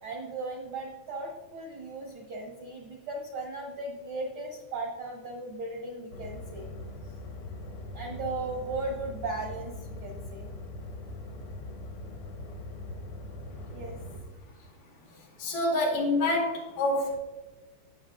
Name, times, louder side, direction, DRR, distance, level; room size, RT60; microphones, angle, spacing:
voice 1, 0.0-6.7 7.9-10.5 13.7-14.0, right 2 dB, 75° right, 1 dB, 1.2 m, -37 dB
sound 1, 6.1-14.2, left 2 dB, 65° left, 1.4 m, -41 dB
voice 2, 15.4-17.2, left 2 dB, 85° left, -1 dB, 3.5 m, -27 dB
16.5 x 6.9 x 2.5 m, 1.2 s
omnidirectional pair, 3.6 m